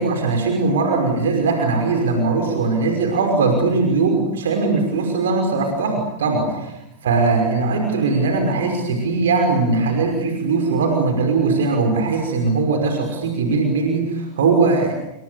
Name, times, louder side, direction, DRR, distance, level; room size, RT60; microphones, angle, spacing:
voice 1, 0.0-6.7 7.0-14.9, right 3 dB, 60° right, 4 dB, 5.7 m, -20 dB
30.0 x 28.0 x 7.0 m, 0.84 s
figure-of-eight pair, 90°, 0 cm